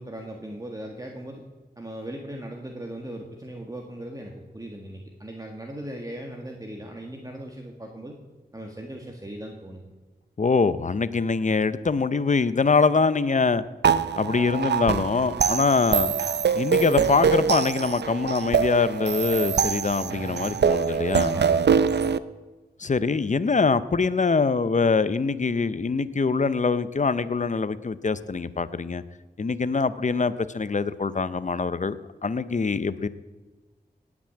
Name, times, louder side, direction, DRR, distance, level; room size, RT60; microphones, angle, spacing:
voice 1, 0.0-1.4 1.8-8.2 8.5-9.9 21.3-21.8, right 1 dB, 20° right, 1 dB, 1.6 m, -38 dB
voice 2, 10.4-13.6 14.2-16.1 16.5-21.4 22.8-29.0 29.4-33.1, left 4 dB, 45° left, 15 dB, 0.7 m, -24 dB
sound 1, 13.8-22.2, right 6 dB, 85° right, 0.5 m, -24 dB
18.0 x 6.2 x 8.7 m, 1.3 s
wide cardioid pair, 75°, 17 cm